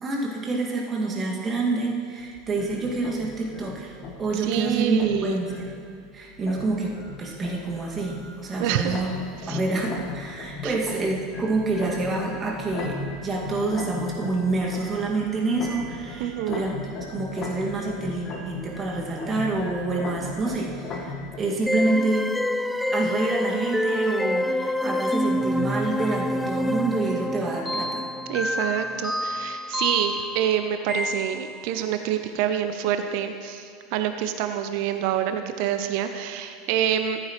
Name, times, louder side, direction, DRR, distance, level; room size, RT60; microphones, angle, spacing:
voice 1, 0.0-3.9 4.2-5.7 6.1-9.1 9.5-22.3 22.9-28.0, right 3 dB, 30° right, -1 dB, 2.0 m, -27 dB
sound 1, 2.2-21.4, left 3 dB, 40° left, 1.5 m, -37 dB
voice 2, 4.3-5.4 8.6-9.0 9.4-9.6 10.6-10.7 16.2-16.6 28.3-37.2, right 10 dB, 60° right, 8 dB, 0.6 m, -27 dB
sound 2, 21.7-31.8, left 1 dB, 5° left, 0.3 m, -27 dB
14.0 x 8.7 x 3.1 m, 2.3 s
hypercardioid pair, 80°, 0 cm